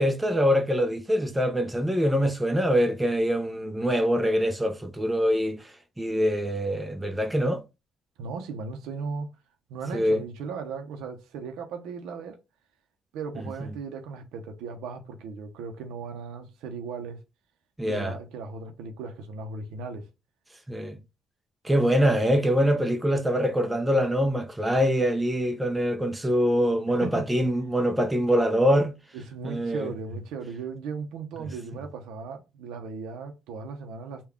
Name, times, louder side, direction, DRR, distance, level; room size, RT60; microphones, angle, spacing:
voice 1, 0.0-5.7 6.0-7.6 9.9-10.2 17.8-18.2 20.7-21.0 21.6-28.9 29.4-29.9, equal, 10° right, 0.5 m, -24 dB
voice 2, 8.2-9.3 9.7-12.4 13.1-17.2 17.9-20.1 26.3-26.4 27.0-27.3 29.1-34.3, right 5 dB, 90° right, 0.6 m, -37 dB
3.5 x 2.2 x 3.5 m
cardioid pair, 90°, 0 cm